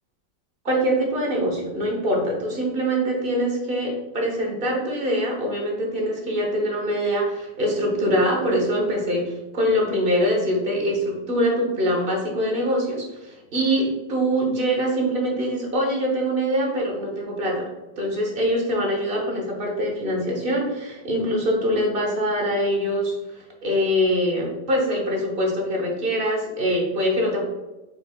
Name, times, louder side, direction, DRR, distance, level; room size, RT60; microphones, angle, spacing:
voice 1, 0.6-17.7 18.0-27.5, equal, 40° right, 0 dB, 1.0 m, -24 dB
4.9 x 4.6 x 2.3 m, 1.1 s
omnidirectional pair, 1.8 m